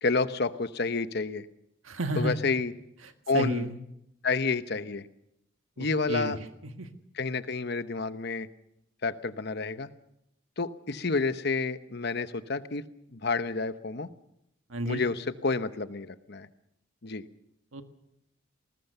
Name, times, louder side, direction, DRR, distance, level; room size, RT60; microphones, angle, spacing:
voice 1, 0.0-1.4 2.2-2.7 3.3-3.6 4.2-5.1 5.8-6.4 7.2-8.5 9.0-9.9 10.6-12.8 13.1-14.1 14.8-16.5 17.0-17.2, left 4 dB, 55° left, 12 dB, 1.0 m, -29 dB
voice 2, 1.8-2.4 3.0-3.8 5.8-6.3 6.6-6.9 14.7-15.0 17.7-17.8, right 1 dB, 85° right, 7 dB, 1.7 m, -32 dB
20.5 x 19.0 x 6.8 m, 0.80 s
head